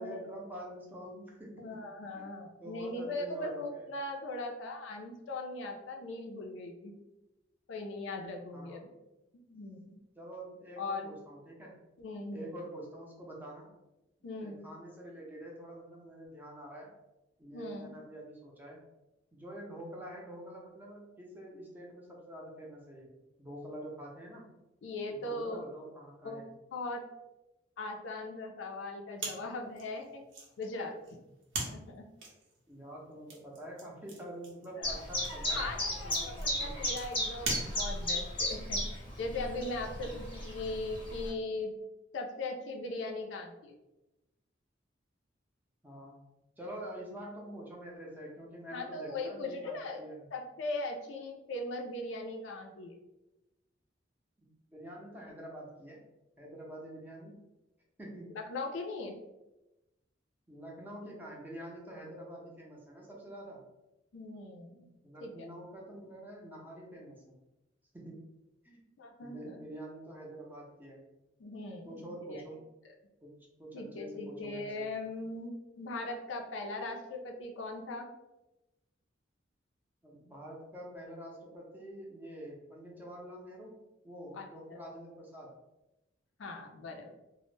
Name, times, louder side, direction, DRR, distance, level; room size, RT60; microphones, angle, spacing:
voice 1, 0.0-1.8 2.1-2.3 2.6-3.9 8.5-8.8 10.1-11.8 12.3-13.7 14.4-16.9 17.4-18.8 19.3-24.5 25.1-26.5 32.7-36.9 40.0-40.1 45.8-46.2 46.6-50.3 54.4-56.0 56.4-57.4 58.0-58.4 60.5-63.6 65.0-67.4 67.9-68.3 68.6-68.8 69.2-71.0 71.9-72.7 73.2-73.3 73.6-74.9 80.0-85.6, right 1 dB, 10° right, -2 dB, 0.5 m, -46 dB
voice 2, 1.6-6.9 7.7-8.9 9.5-10.0 10.8-11.1 12.0-12.5 14.2-14.6 17.5-17.9 24.8-25.6 26.2-26.4 26.7-27.0 27.8-30.2 30.6-30.9 31.6-32.0 34.8-35.0 35.5-41.7 42.1-43.7 48.7-50.0 50.3-52.9 58.3-59.2 64.1-64.9 65.2-65.5 69.0-69.6 71.4-72.4 73.7-78.1 84.3-84.8 86.4-87.2, left 2 dB, 75° left, 2 dB, 0.4 m, -39 dB
sound 1, 29.2-38.2, right 3 dB, 75° right, 0.7 m, -43 dB
Chirp tweet, 34.8-41.3, left 1 dB, 25° left, 0.6 m, -35 dB
2.1 x 2.0 x 3.0 m, 0.98 s
head